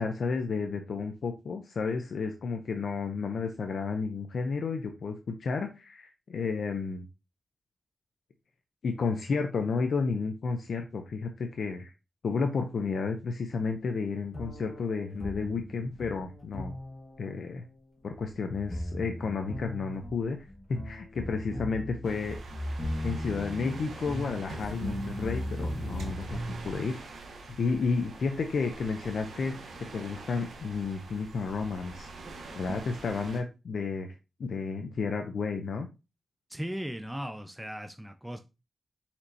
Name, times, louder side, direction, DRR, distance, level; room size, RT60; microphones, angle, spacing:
voice 1, 0.0-7.0 8.8-11.9 12.2-16.7 17.2-17.6 18.0-20.4 20.7-22.4 23.0-27.0 27.5-29.6 29.9-32.1 32.6-35.9, left 4 dB, 75° left, 0.5 m, -32 dB
sound 1, 14.3-26.8, equal, 40° left, 1.7 m, -38 dB
sound 2, 22.0-33.4, right 2 dB, 85° right, 0.9 m, -44 dB
voice 2, 36.5-38.4, equal, 5° right, 0.5 m, -37 dB
4.4 x 4.3 x 2.7 m
cardioid pair, 55°, 0 cm